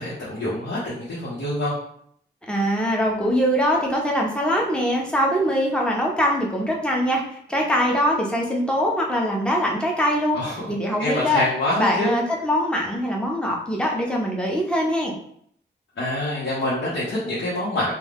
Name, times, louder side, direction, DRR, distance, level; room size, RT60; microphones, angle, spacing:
voice 1, 0.0-1.7 10.3-10.7 11.0-12.2 16.0-17.9, left 1 dB, 85° left, -9 dB, 1.0 m, -26 dB
voice 2, 2.5-10.4 10.7-11.4 11.8-15.1, equal, 5° left, -1 dB, 0.7 m, -22 dB
2.4 x 2.3 x 3.5 m, 0.66 s
cardioid pair, 75°, 19 cm